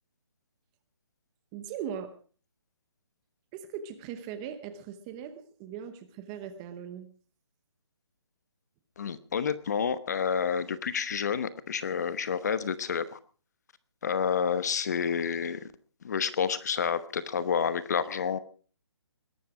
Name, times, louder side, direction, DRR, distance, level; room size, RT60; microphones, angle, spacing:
voice 1, 1.5-2.1 3.5-7.1, right 8 dB, 15° right, 10 dB, 0.8 m, -39 dB
voice 2, 9.0-13.2 14.0-15.7 16.0-18.4, left 7 dB, 40° left, 15 dB, 1.0 m, -29 dB
21.0 x 12.0 x 4.9 m, 0.40 s
hypercardioid pair, 170°, 14 cm